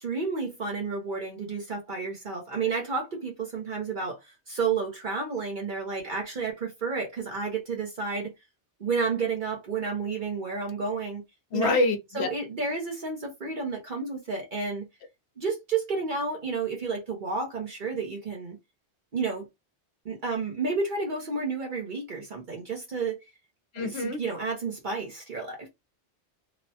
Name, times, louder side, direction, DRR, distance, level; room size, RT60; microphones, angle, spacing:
voice 1, 0.0-8.3 8.8-11.2 11.5-11.8 12.1-14.9 15.4-18.6 19.1-19.5 20.0-23.2 23.8-25.7, right 4 dB, 50° right, 0.9 m, -31 dB
voice 2, 11.5-12.3 23.7-24.2, left 2 dB, 75° left, 0.9 m, -26 dB
3.0 x 2.1 x 2.7 m
omnidirectional pair, 1.1 m